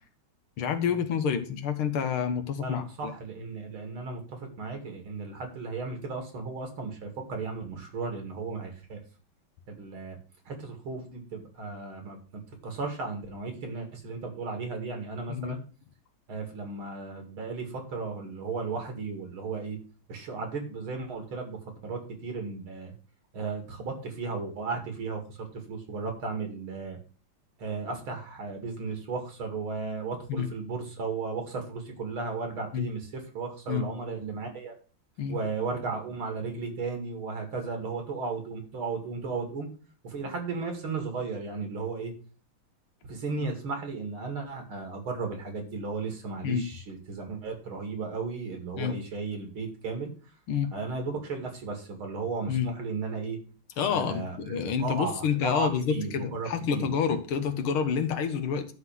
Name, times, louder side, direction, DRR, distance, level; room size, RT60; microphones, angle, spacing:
voice 1, 0.6-3.1 15.3-15.6 30.3-30.5 32.7-32.9 33.7-33.8 35.2-35.4 46.4-46.6 48.8-48.9 50.5-50.7 52.5-52.7 53.8-58.7, left 7 dB, 80° left, 8 dB, 2.1 m, -28 dB
voice 2, 2.6-9.0 9.7-10.2 10.5-12.2 12.6-15.6 16.3-19.8 20.1-21.6 21.8-22.9 23.3-27.0 27.6-34.7 35.3-39.7 40.0-42.1 43.1-50.1 50.7-53.4 53.9-56.9, right 4 dB, 75° right, 4 dB, 3.2 m, -35 dB
11.5 x 4.0 x 7.5 m, 0.38 s
omnidirectional pair, 2.3 m